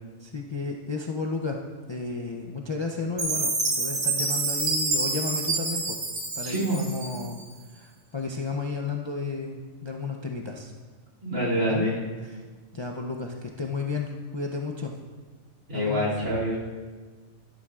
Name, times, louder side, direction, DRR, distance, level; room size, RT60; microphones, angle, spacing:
voice 1, 0.2-1.6 1.9-6.0 6.4-7.4 7.7-10.7 11.7-11.9 12.2-12.4 12.7-14.9 15.7-16.1, left 4 dB, 40° left, 1 dB, 0.4 m, -33 dB
Chime, 3.2-7.4, right 3 dB, 50° right, 1.3 m, -28 dB
voice 2, 6.4-6.8 11.2-12.0 15.7-16.6, equal, 80° right, -5 dB, 3.1 m, -26 dB
12.0 x 11.0 x 2.4 m, 1.4 s
omnidirectional pair, 1.4 m